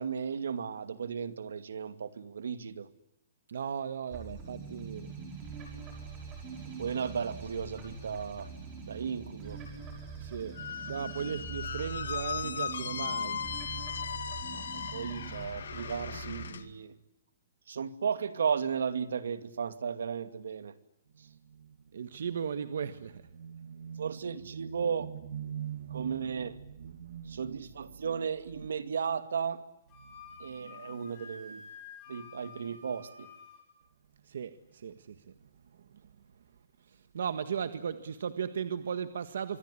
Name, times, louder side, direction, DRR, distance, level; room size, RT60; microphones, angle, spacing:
voice 1, 0.0-2.9 6.8-8.5 8.9-9.6 14.5-17.0 17.7-20.7 21.2-21.3 24.0-25.1 25.9-26.6 27.3-29.6 30.4-31.6 32.1-33.3, right 6 dB, 85° right, 11 dB, 2.4 m, -35 dB
voice 2, 3.5-5.3 10.2-10.5 10.9-13.4 21.2-24.2 24.5-27.6 30.0-30.1 34.2-35.2 35.7-35.9 36.9-39.6, right 7 dB, 60° right, 10 dB, 1.6 m, -38 dB
sound 1, 4.1-16.5, right 5 dB, 15° right, 5.8 m, -43 dB
Squeak, 10.5-16.6, left 7 dB, 75° left, 2.3 m, -37 dB
Wind instrument woodwind instrument, 29.9-33.6, left 5 dB, 15° left, 7.9 m, -50 dB
26.0 x 23.0 x 9.9 m, 0.86 s
hypercardioid pair, 180°, 0 cm